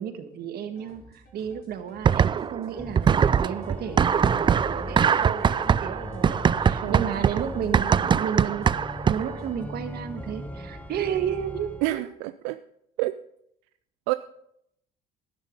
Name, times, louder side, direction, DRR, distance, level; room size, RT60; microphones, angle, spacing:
voice 1, 0.0-8.7 9.0-12.0, right 8 dB, 60° right, 8 dB, 1.7 m, -32 dB
sound 1, 0.7-9.5, left 2 dB, 60° left, 5.8 m, -53 dB
sound 2, 2.0-2.6 3.0-9.4, right 7 dB, 25° right, 0.4 m, -22 dB
Organ, 2.7-12.0, equal, 10° left, 1.3 m, -39 dB
voice 2, 11.8-12.6 13.0-13.2 14.1-14.2, right 18 dB, 85° right, 12 dB, 0.4 m, -28 dB
12.0 x 10.5 x 5.3 m, 0.74 s
supercardioid pair, 90°, 18 cm